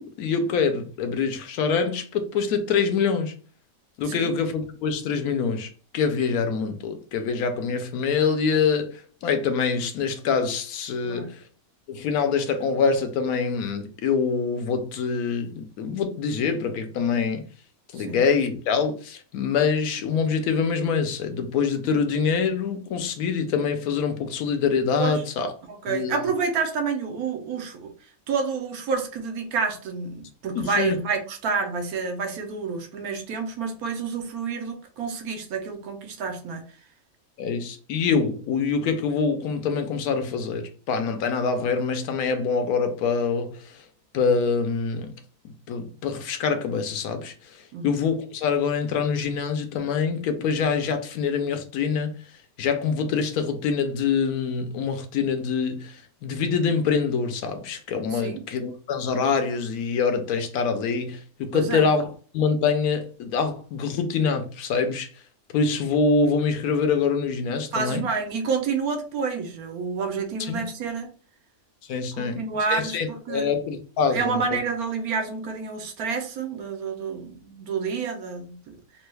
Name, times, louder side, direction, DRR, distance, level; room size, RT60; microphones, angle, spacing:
voice 1, 0.0-3.3 4.0-11.4 11.9-17.4 17.9-25.5 25.9-26.1 30.5-31.0 37.4-43.7 44.1-45.1 45.7-52.1 52.6-65.1 65.5-68.0 70.5-70.6 71.9-72.4 72.7-74.6, left 5 dB, 80° left, 1.1 m, -25 dB
voice 2, 4.0-4.4 11.0-11.3 18.0-18.2 25.0-25.2 25.6-27.9 28.3-36.6 47.7-47.9 58.1-58.5 61.5-61.9 67.7-71.1 72.1-73.5 74.1-78.7, right 5 dB, 85° right, 1.2 m, -29 dB
3.1 x 2.2 x 3.2 m
omnidirectional pair, 1.5 m